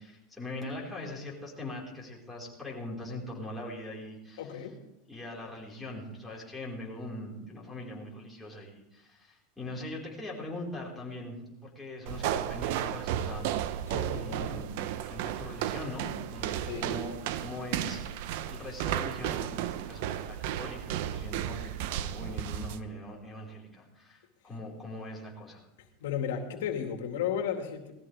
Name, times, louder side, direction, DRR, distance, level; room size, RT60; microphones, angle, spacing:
voice 1, 0.0-4.6 5.1-13.5 14.1-14.7 15.0-17.2 17.4-25.6, left 1 dB, 5° left, -5 dB, 5.0 m, -41 dB
voice 2, 4.4-4.8 13.9-14.6 16.6-16.9 26.0-27.9, left 8 dB, 80° left, 4 dB, 2.3 m, -34 dB
sound 1, 12.1-22.8, right 11 dB, 65° right, 0.8 m, -34 dB
19.0 x 14.5 x 3.6 m, 0.94 s
supercardioid pair, 135°, 0 cm